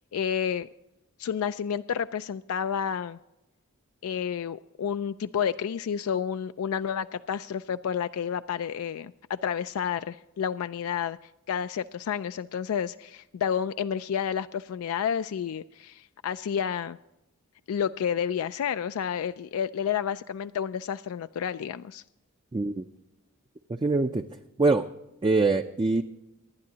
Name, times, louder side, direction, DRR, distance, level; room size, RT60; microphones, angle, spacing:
voice 1, 0.1-0.7 1.2-3.2 4.0-11.2 11.5-17.0 17.7-22.0, left 8 dB, 85° left, 11 dB, 0.3 m, -30 dB
voice 2, 22.5-22.8 23.8-24.2 24.6-24.9 25.2-26.0, right 3 dB, 20° right, 6 dB, 0.4 m, -23 dB
25.5 x 10.5 x 2.8 m, 0.95 s
head